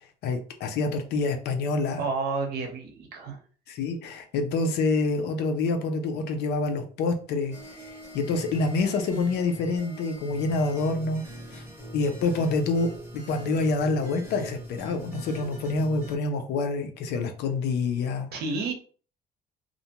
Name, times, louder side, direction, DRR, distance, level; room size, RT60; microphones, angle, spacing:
voice 1, 0.2-2.0 2.6-2.7 3.7-7.5 7.9-11.2 11.5-11.6 11.9-12.9 13.1-18.4, left 3 dB, 80° left, 6 dB, 0.5 m, -27 dB
voice 2, 2.0-3.4 18.3-18.7, right 4 dB, 70° right, 4 dB, 0.8 m, -30 dB
sound 1, 7.5-16.2, equal, 15° right, 1.0 m, -42 dB
2.5 x 2.1 x 2.8 m, 0.41 s
cardioid pair, 110°, 17 cm